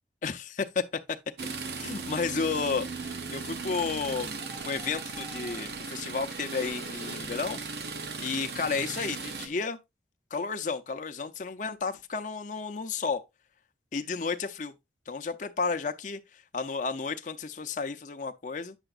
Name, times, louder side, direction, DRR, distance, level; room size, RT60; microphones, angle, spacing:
voice 1, 0.2-0.8 1.8-4.4 4.6-7.6 8.2-9.8 10.3-13.2 13.9-14.7 15.1-18.7, left 4 dB, 45° left, 0.6 m, -32 dB
sound 1, 1.4-9.5, right 4 dB, 65° right, 0.9 m, -37 dB
sound 2, 2.6-7.6, right 2 dB, 15° right, 0.8 m, -54 dB
8.9 x 6.8 x 2.4 m
head